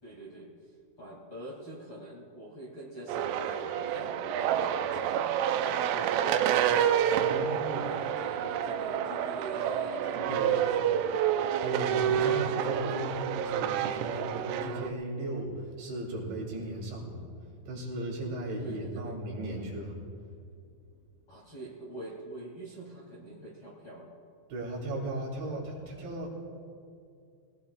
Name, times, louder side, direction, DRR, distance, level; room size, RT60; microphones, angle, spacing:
voice 1, 0.0-6.6 7.2-11.0 18.6-19.2 21.3-24.1, right 1 dB, 35° left, -6 dB, 2.3 m, -45 dB
sound 1, 3.1-14.9, right 9 dB, 85° right, 3.1 m, -28 dB
voice 2, 7.1-7.9 10.1-10.6 11.3-17.2 17.7-20.0 24.5-26.3, right 1 dB, 70° right, -3 dB, 5.3 m, -36 dB
23.0 x 18.5 x 2.4 m, 2.4 s
omnidirectional pair, 5.6 m